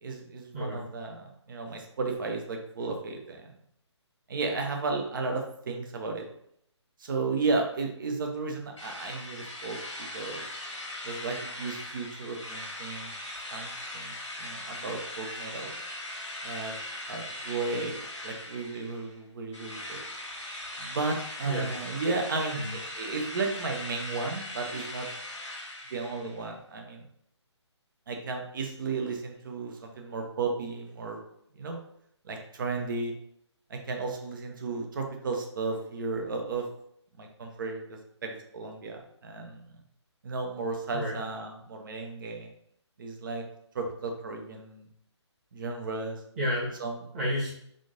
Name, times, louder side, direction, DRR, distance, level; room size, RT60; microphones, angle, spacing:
voice 1, 0.0-3.5 4.3-6.2 7.0-9.8 10.1-10.4 11.0-13.1 13.5-15.7 16.4-16.7 17.1-20.0 20.8-25.1 25.9-27.0 28.1-31.2 31.6-31.8 32.2-33.1 33.7-36.6 37.2-39.6 40.2-42.5 43.0-43.4 43.7-44.9 45.5-46.2 46.8-47.0, right 3 dB, 45° right, 3 dB, 0.7 m, -34 dB
voice 2, 0.5-0.8 21.4-21.7 22.5-22.7 40.9-41.2 46.4-46.7 47.1-47.5, equal, 30° right, -7 dB, 1.3 m, -30 dB
Drill, 8.8-19.1 19.5-26.4, left 1 dB, 85° left, 1.2 m, -40 dB
3.7 x 2.5 x 3.7 m, 0.71 s
figure-of-eight pair, 150°, 15 cm